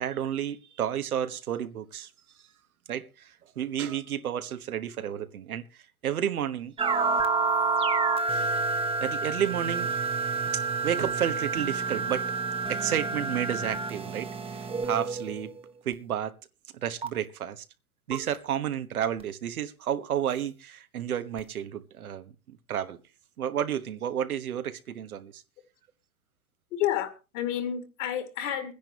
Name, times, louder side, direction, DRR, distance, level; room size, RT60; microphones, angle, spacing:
voice 1, 0.0-2.1 2.9-6.7 8.3-8.5 9.0-10.0 10.5-12.3 12.7-15.5 15.8-16.3 16.7-17.6 18.1-23.0 23.4-25.4, right 9 dB, 90° right, 1.4 m, -31 dB
sound 1, 6.8-15.6 17.0-17.1 18.1-18.2 19.2-19.3 21.4-21.5, right 4 dB, 15° right, 1.0 m, -29 dB
voice 2, 26.7-28.7, left 10 dB, 60° left, 2.5 m, -30 dB
22.5 x 10.5 x 3.1 m
hypercardioid pair, 125°, 42 cm